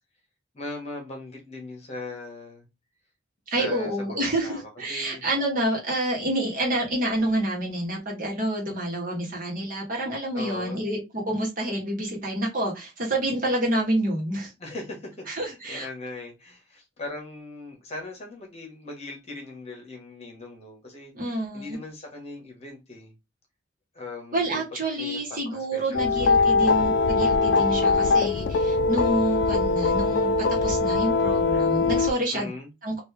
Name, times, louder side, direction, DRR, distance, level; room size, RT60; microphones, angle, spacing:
voice 1, 0.5-2.6 3.5-5.2 10.3-10.8 14.6-23.1 23.9-24.7 25.0-25.2 25.5-26.7 32.3-32.7, left 2 dB, 35° left, 1.3 m, -39 dB
voice 2, 3.5-14.5 15.3-15.9 21.1-21.8 24.3-30.3 30.6-32.5 32.8-33.0, right 1 dB, 45° right, 1.3 m, -28 dB
sound 1, 25.9-32.1, left 4 dB, 60° left, 0.3 m, -22 dB
3.2 x 2.6 x 3.3 m
head